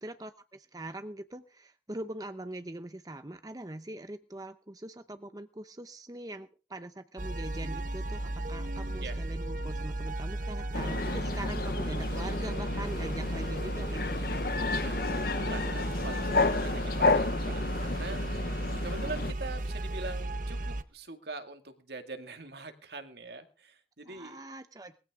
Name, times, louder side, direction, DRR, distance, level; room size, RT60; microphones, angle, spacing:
voice 1, 0.0-14.3 24.0-25.0, right 1 dB, 20° right, 9 dB, 0.7 m, -42 dB
sound 1, 7.2-20.8, right 1 dB, 45° right, 0.9 m, -35 dB
sound 2, 10.7-19.3, left 3 dB, 55° left, 0.8 m, -31 dB
voice 2, 14.8-18.6 18.8-24.5, right 3 dB, 65° right, 6 dB, 2.2 m, -43 dB
20.5 x 15.0 x 3.7 m, 0.35 s
head